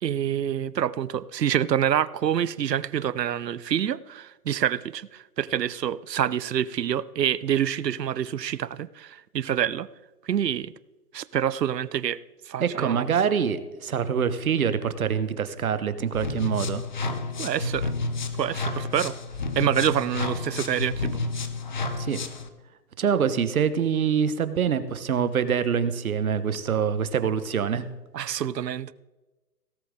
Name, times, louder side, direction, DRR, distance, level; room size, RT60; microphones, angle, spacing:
voice 1, 0.0-9.9 10.3-10.7 11.1-12.2 12.5-13.1 17.4-17.9 18.4-19.1 19.6-21.2 28.1-28.9, right 10 dB, 90° right, 19 dB, 0.7 m, -27 dB
voice 2, 12.6-16.8 22.0-22.2 23.0-27.9, right 7 dB, 60° right, 12 dB, 1.2 m, -25 dB
sound 1, 16.1-22.5, left 3 dB, 30° left, 0.6 m, -30 dB
17.5 x 7.8 x 3.7 m, 1.1 s
hypercardioid pair, 160°, 48 cm